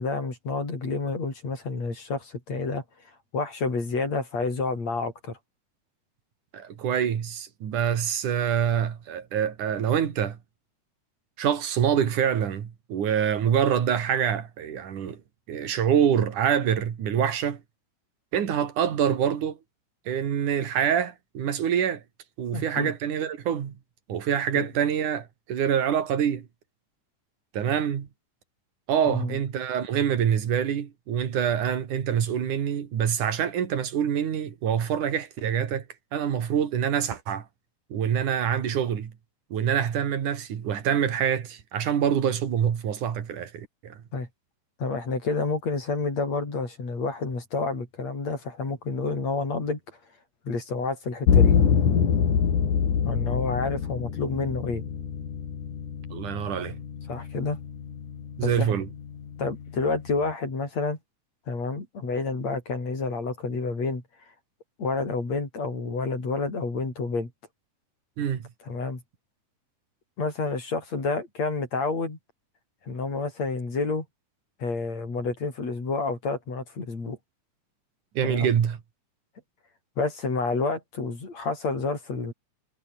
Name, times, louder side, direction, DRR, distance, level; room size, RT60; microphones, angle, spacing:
voice 1, 0.0-2.8 3.3-5.4 22.5-22.9 24.5-24.7 29.1-29.4 44.1-44.3 44.8-49.8 50.5-51.6 53.0-54.8 57.1-57.6 58.4-58.8 59.4-61.0 61.5-64.0 64.8-67.3 68.7-69.0 70.2-72.2 72.9-74.1 74.6-77.2 78.2-78.5 80.0-82.3, left 3 dB, 60° left, 7.4 m, -29 dB
voice 2, 6.5-10.4 11.4-15.2 15.5-17.6 18.3-19.6 20.1-22.0 22.4-23.8 24.1-26.5 27.5-28.1 28.9-35.9 36.1-37.5 37.9-39.1 39.5-44.0 56.1-56.8 58.4-58.9 68.2-68.5 78.2-78.8, right 8 dB, 90° right, 3.8 m, -25 dB
sound 1, 51.3-60.3, left 7 dB, 90° left, 4.6 m, -26 dB
omnidirectional pair, 3.4 m